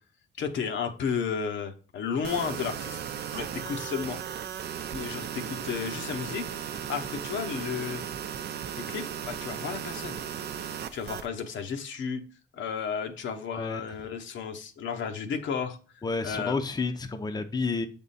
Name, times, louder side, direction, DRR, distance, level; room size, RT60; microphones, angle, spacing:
voice 1, 0.4-3.0 3.3-4.2 4.9-8.0 8.8-10.2 10.9-12.2 12.5-16.6, left 6 dB, 70° left, 6 dB, 0.8 m, -33 dB
sound 1, 2.2-11.3, right 8 dB, 55° right, 0.5 m, -36 dB
voice 2, 13.5-13.8 16.0-17.9, left 3 dB, 20° left, 7 dB, 0.6 m, -30 dB
6.6 x 3.6 x 4.0 m, 0.39 s
cardioid pair, 90°, 20 cm